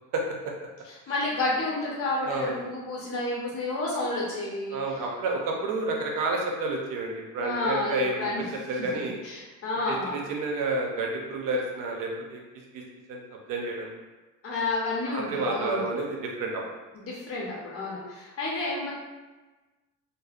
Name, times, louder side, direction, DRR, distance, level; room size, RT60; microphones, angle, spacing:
voice 1, 0.9-4.8 7.4-8.4 8.9-10.2 14.4-15.9 16.9-18.9, left 2 dB, 45° left, -5 dB, 0.8 m, -30 dB
voice 2, 2.3-2.6 4.7-8.3 8.7-9.2 9.9-12.4 12.7-12.8 13.1-13.2 13.5-13.9 15.1-16.6, right 2 dB, 90° right, 0 dB, 0.6 m, -30 dB
2.6 x 2.0 x 2.4 m, 1.2 s
cardioid pair, 135°, 32 cm